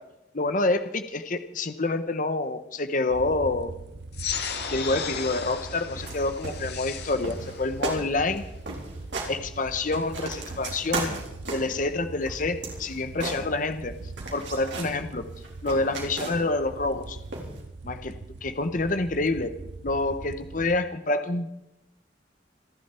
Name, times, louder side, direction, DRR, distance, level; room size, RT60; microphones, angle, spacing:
voice 1, 0.3-3.7 4.7-8.4 9.3-11.2 11.5-13.9 14.3-15.3 15.6-17.2 17.8-19.6 19.8-21.5, left 2 dB, 45° left, 10 dB, 0.9 m, -27 dB
sound 1, 3.1-20.8, right 3 dB, 65° right, 0.7 m, -42 dB
sound 2, 4.1-9.1, left 6 dB, 65° left, 1.9 m, -36 dB
sound 3, 6.0-6.2 6.4-7.0 7.2-7.6 7.8-8.0 8.3-8.4 8.7-9.3 9.7-11.8 12.2-13.9 14.2-14.9 15.3-16.6 17.3-17.6, right 3 dB, 80° right, 4.1 m, -35 dB
28.5 x 11.0 x 4.4 m, 0.88 s
head